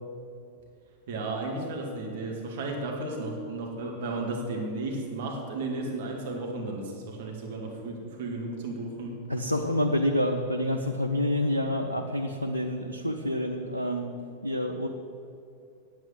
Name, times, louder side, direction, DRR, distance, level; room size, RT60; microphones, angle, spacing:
voice 1, 1.1-9.1, right 2 dB, 55° right, 0 dB, 2.1 m, -34 dB
voice 2, 9.3-14.1 14.4-14.9, left 1 dB, 90° left, 2 dB, 0.7 m, -28 dB
9.1 x 9.0 x 7.6 m, 2.6 s
figure-of-eight pair, 90°, 0 cm